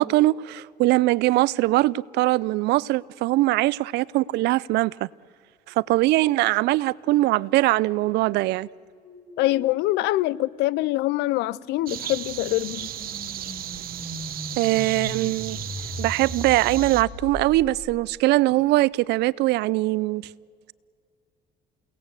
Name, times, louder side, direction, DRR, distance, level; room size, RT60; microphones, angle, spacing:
voice 1, 0.0-5.1 5.7-8.7 14.6-15.6 16.0-20.3, right 18 dB, 85° right, 0.5 m, -22 dB
sound 1, 8.0-18.0, left 1 dB, 35° left, 7.1 m, -40 dB
voice 2, 9.4-12.9, left 17 dB, 85° left, 0.5 m, -24 dB
sound 2, 11.9-17.0, right 11 dB, 60° right, 1.2 m, -35 dB
29.0 x 18.0 x 8.2 m
cardioid pair, 110°, 17 cm